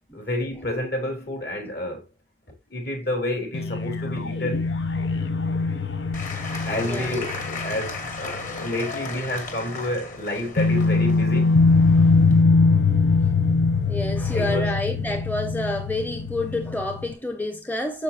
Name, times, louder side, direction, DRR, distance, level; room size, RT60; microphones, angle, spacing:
voice 1, 0.1-2.0 2.7-4.7 6.6-11.6 14.3-14.7, left 1 dB, 60° left, 3.9 m, -29 dB
sound 1, 3.5-9.0 9.3-9.4 10.6-17.1, left 4 dB, 80° left, 0.9 m, -22 dB
Applause / Crowd, 6.1-12.4, left 3 dB, 45° left, 2.3 m, -36 dB
voice 2, 6.7-7.3 12.0-12.1 13.9-18.0, left 1 dB, 10° left, 0.8 m, -29 dB
9.7 x 7.4 x 2.7 m
head